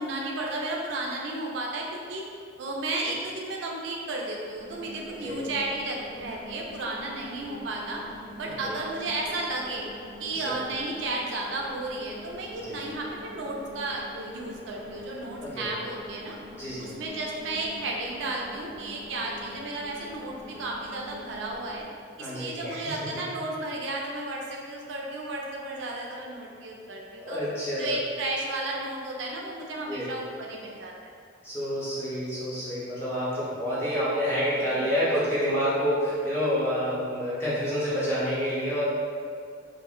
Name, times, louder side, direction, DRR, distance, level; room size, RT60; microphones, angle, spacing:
voice 1, 0.0-2.3 2.6-8.0 8.4-9.9 10.2-16.4 16.8-21.8 22.2-27.4 27.8-31.1 34.6-34.7, right 2 dB, 65° right, -1 dB, 0.3 m, -33 dB
sound 1, 4.5-21.8, left 1 dB, 65° left, 0.7 m, -45 dB
voice 2, 15.4-15.7 16.6-16.9 22.2-23.1 27.2-28.0 29.9-30.1 31.4-38.8, equal, 15° left, -10 dB, 0.7 m, -28 dB
2.4 x 2.0 x 3.6 m, 2.2 s
head